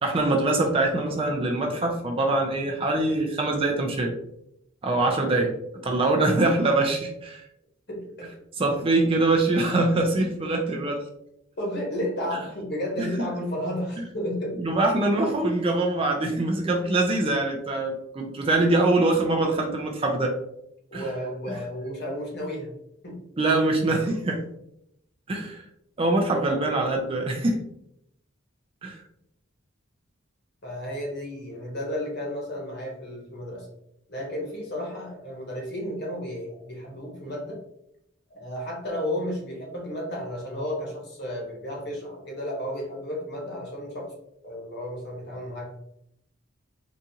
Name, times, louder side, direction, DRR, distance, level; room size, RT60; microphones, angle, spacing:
voice 1, 0.0-4.1 4.8-5.5 5.8-7.4 8.6-11.0 14.6-20.4 20.9-21.0 23.4-24.4 25.3-25.6 26.0-27.6 28.8-29.0, right 2 dB, 25° right, 2 dB, 0.3 m, -23 dB
voice 2, 7.9-8.3 11.6-14.6 20.9-22.7 23.0-23.2 30.6-33.7 34.1-37.6 38.3-44.1 44.4-45.7, equal, 50° left, -2 dB, 1.1 m, -32 dB
3.9 x 2.4 x 2.8 m, 0.78 s
head